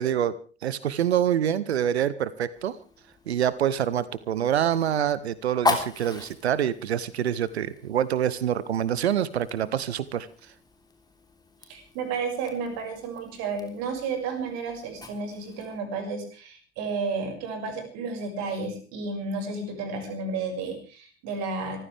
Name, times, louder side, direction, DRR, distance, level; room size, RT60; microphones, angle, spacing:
voice 1, 0.0-2.8 3.3-10.3, right 10 dB, 75° right, 19 dB, 0.9 m, -26 dB
Fire, 2.5-15.8, left 3 dB, 10° left, 3.5 m, -37 dB
voice 2, 11.7-21.8, right 4 dB, 50° right, 5 dB, 6.2 m, -32 dB
26.0 x 15.0 x 3.5 m, 0.36 s
figure-of-eight pair, 70°, 33 cm